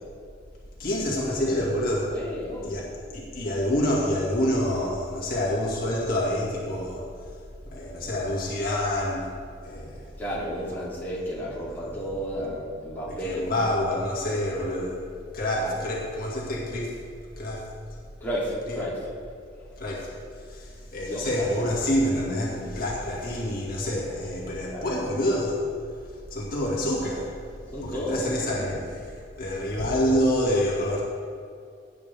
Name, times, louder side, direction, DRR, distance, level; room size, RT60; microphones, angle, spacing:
voice 1, 0.8-2.1 2.6-2.8 3.1-7.0 7.7-9.3 9.6-10.1 13.1-15.0 15.3-17.0 17.4-17.6 18.7-18.8 19.8-20.1 20.4-25.6 26.3-27.3 27.8-31.0, left 1 dB, 50° left, -5 dB, 2.1 m, -27 dB
voice 2, 2.1-2.8 10.2-13.7 15.5-15.8 18.2-18.9 21.0-21.3 22.5-22.7 24.7-24.9 25.2-25.3 27.7-28.8, equal, 10° left, -8 dB, 2.8 m, -32 dB
17.0 x 8.7 x 3.5 m, 2.3 s
head